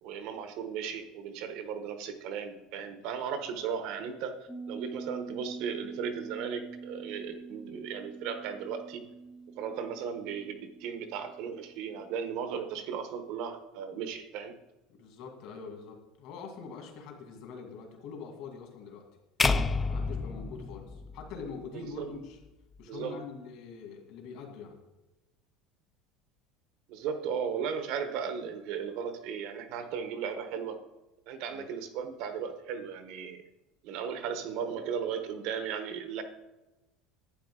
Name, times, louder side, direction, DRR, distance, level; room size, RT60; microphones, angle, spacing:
voice 1, 0.0-4.3 4.7-9.0 9.6-14.5 21.7-22.1 22.9-23.2 26.9-30.8 31.3-33.4 33.8-36.2, right 7 dB, 50° right, 8 dB, 1.0 m, -36 dB
voice 2, 3.1-3.6 9.5-9.6 14.9-19.0 19.9-22.4 22.8-24.8 31.5-31.7, left 5 dB, 55° left, 2 dB, 2.3 m, -44 dB
sound 1, 4.5-12.8 13.1-13.2, right 4 dB, 10° right, 0.8 m, -45 dB
sound 2, 19.4-21.7, left 4 dB, 15° left, 0.3 m, -29 dB
11.5 x 8.9 x 3.7 m, 1.0 s
cardioid pair, 175°, 0 cm